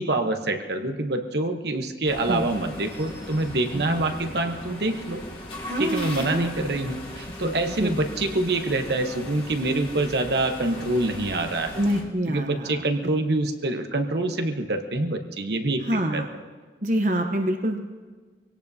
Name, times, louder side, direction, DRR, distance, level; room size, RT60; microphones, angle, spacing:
voice 1, 0.0-5.2 5.8-11.8 12.3-15.8 16.1-16.2, right 2 dB, 65° right, 5 dB, 1.1 m, -26 dB
sound 1, 2.0-12.0, left 1 dB, 30° left, 2.4 m, -38 dB
voice 2, 5.7-6.5 7.4-7.9 11.8-12.8 15.8-16.3 16.8-17.8, right 1 dB, 45° right, 4 dB, 0.9 m, -26 dB
24.0 x 17.5 x 2.8 m, 1.4 s
head